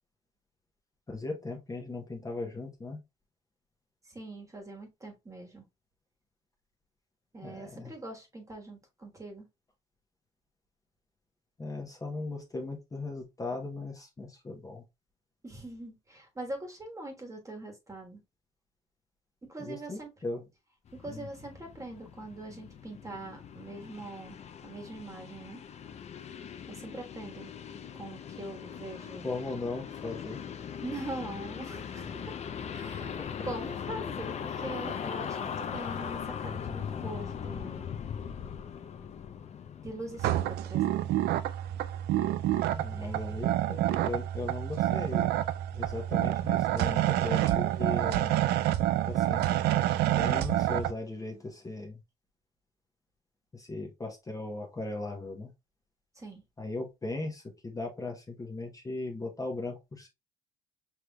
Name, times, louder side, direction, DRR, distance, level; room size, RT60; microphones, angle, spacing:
voice 1, 1.1-3.0 7.4-7.9 11.6-14.8 19.6-20.4 21.1-21.3 29.2-30.4 33.2-33.5 42.7-45.3 45.7-48.3 49.1-49.4 50.1-52.0 53.5-55.5 56.6-60.1, left 3 dB, 20° left, 0.9 m, -38 dB
voice 2, 4.0-5.7 7.3-9.5 15.4-18.2 19.4-20.1 20.9-25.6 26.7-27.5 27.9-29.3 30.8-32.3 32.7-33.1 33.4-37.9 39.8-41.0 43.0-43.4 56.1-56.4, right 2 dB, 20° right, 1.4 m, -42 dB
sound 1, 20.9-40.4, left 7 dB, 40° left, 0.6 m, -40 dB
sound 2, 40.2-50.9, right 13 dB, 70° right, 0.4 m, -28 dB
5.7 x 3.3 x 2.3 m
cardioid pair, 110°, 17 cm